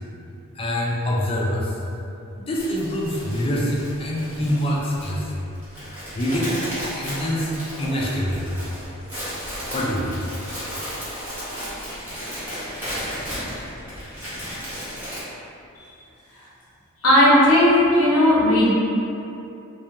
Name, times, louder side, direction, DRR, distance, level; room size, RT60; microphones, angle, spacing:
voice 1, 0.5-1.8 2.4-5.3 6.1-7.5 7.8-8.6 9.7-10.3, equal, 25° left, -4 dB, 0.3 m, -25 dB
sound 1, 2.6-15.2, equal, 10° right, 0.8 m, -34 dB
voice 2, 17.0-18.7, left 1 dB, 75° left, -7 dB, 0.7 m, -15 dB
2.3 x 2.3 x 2.8 m, 2.7 s
head